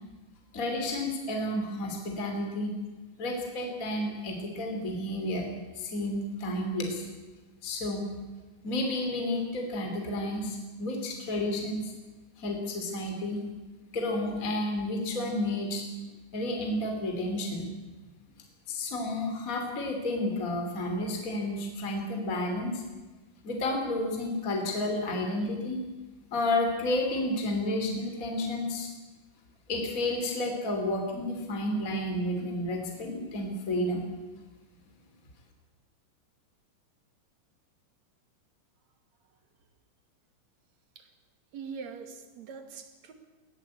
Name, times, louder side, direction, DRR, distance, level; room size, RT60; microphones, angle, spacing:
voice 1, 0.5-2.7 3.2-5.5 5.7-7.1 7.6-8.1 8.6-11.9 12.4-13.4 13.9-15.8 16.3-17.7 18.7-22.8 23.4-25.8 26.3-28.9 29.7-34.0, left 1 dB, 25° left, 2 dB, 3.2 m, -31 dB
voice 2, 41.5-43.1, right 6 dB, 60° right, 7 dB, 3.3 m, -42 dB
20.5 x 17.0 x 8.4 m, 1.2 s
omnidirectional pair, 3.7 m